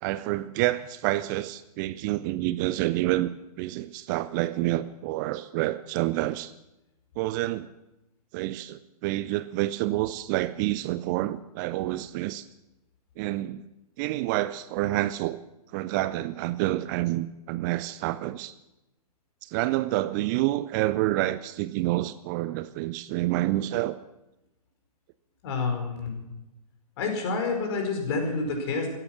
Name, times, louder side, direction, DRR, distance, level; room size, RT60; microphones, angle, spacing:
voice 1, 0.0-3.3 3.6-6.5 7.2-7.7 8.3-12.5 13.2-13.6 14.0-15.4 15.7-18.5 19.4-24.0, right 16 dB, 30° right, 15 dB, 0.5 m, -28 dB
voice 2, 25.4-26.3 27.0-28.9, left 4 dB, 40° left, 3 dB, 4.8 m, -28 dB
16.5 x 14.0 x 6.2 m, 0.94 s
figure-of-eight pair, 110°, 20 cm